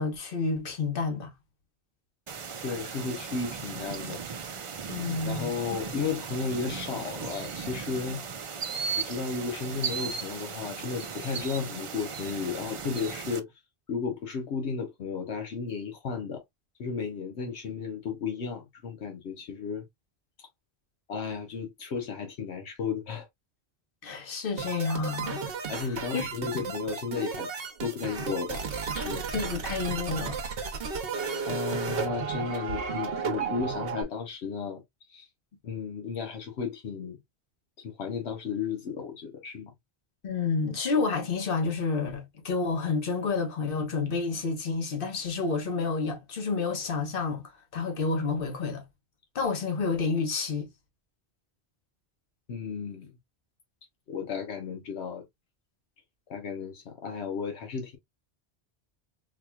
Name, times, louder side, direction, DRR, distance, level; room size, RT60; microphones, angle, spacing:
voice 1, 0.0-1.3 4.9-5.8 24.0-25.4 26.1-26.2 29.3-30.4 40.2-47.4 47.7-48.8 49.3-50.7, left 4 dB, 55° left, 1.2 m, -29 dB
sound 1, 2.3-13.4, right 6 dB, 50° right, 0.4 m, -37 dB
voice 2, 2.6-4.2 5.2-8.2 8.9-13.5 13.9-16.4 16.8-19.9 20.4-20.5 21.1-23.3 25.7-27.5 27.8-29.2 31.4-34.8 35.1-35.3 35.6-37.2 37.8-39.7 52.5-53.1 54.1-55.2 56.3-58.0, left 5 dB, 80° left, 1.1 m, -34 dB
sound 2, 24.6-34.0, right 5 dB, 65° right, 1.0 m, -33 dB
4.0 x 2.9 x 2.2 m
omnidirectional pair, 1.1 m